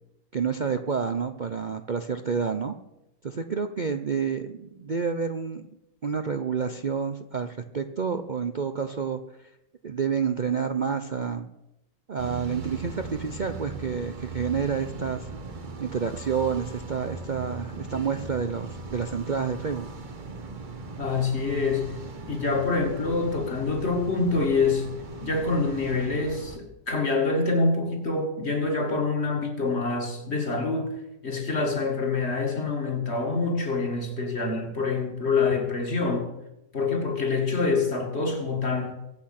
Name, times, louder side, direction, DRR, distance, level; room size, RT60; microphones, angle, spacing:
voice 1, 0.3-2.7 3.2-5.7 6.0-9.5 9.8-11.5 12.1-15.3 15.8-19.9, right 6 dB, 70° right, 0.4 m, -29 dB
sound 1, 12.2-26.6, right 3 dB, 35° right, 0.9 m, -39 dB
voice 2, 21.0-21.9 22.3-24.9 25.2-30.9 31.2-36.3 36.7-38.9, left 3 dB, 35° left, 2.4 m, -26 dB
23.5 x 8.5 x 5.9 m
omnidirectional pair, 2.0 m